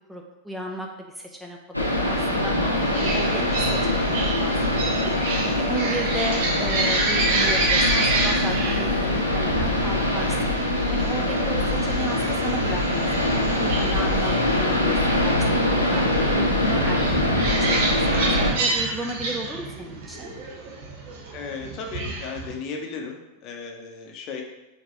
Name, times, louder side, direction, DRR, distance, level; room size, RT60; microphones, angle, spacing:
voice 1, 0.1-2.5 3.0-4.5 4.8-5.1 5.6-10.5 10.9-13.0 13.4-16.0 16.3-17.3 17.6-20.3, right 1 dB, 5° right, 1 dB, 0.4 m, -34 dB
sound 1, 1.7-18.5, left 1 dB, 90° left, 0.5 m, -23 dB
voice 2, 2.6-3.0 21.3-24.4, left 5 dB, 35° left, 2 dB, 0.6 m, -35 dB
sound 2, 2.8-22.5, right 3 dB, 50° right, 0.8 m, -29 dB
4.4 x 2.9 x 3.0 m, 1.0 s
figure-of-eight pair, 90°, 0 cm